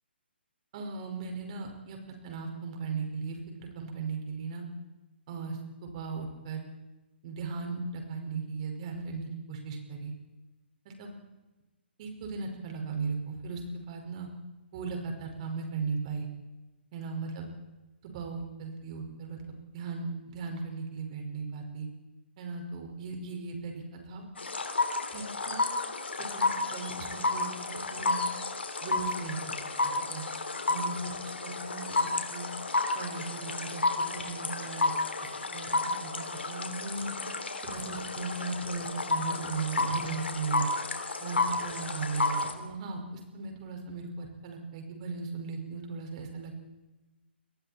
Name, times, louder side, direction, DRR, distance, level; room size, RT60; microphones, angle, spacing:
voice 1, 0.7-4.6 5.3-5.6 5.8-6.6 7.2-10.1 10.9-11.1 12.0-14.3 14.7-16.3 16.9-17.5 18.0-19.4 19.7-21.9 22.4-24.2 25.1-25.6 26.3-28.2 28.8-29.7 30.1-30.2 30.7-31.1 31.4-32.5 32.9-34.9 35.5-37.2 37.6-40.7 41.2-46.6, right 4 dB, 40° right, 3 dB, 5.4 m, -37 dB
sound 1, 24.4-42.5, left 3 dB, 70° left, 3.2 m, -31 dB
28.0 x 22.5 x 4.4 m, 1.1 s
figure-of-eight pair, 130°, 6 cm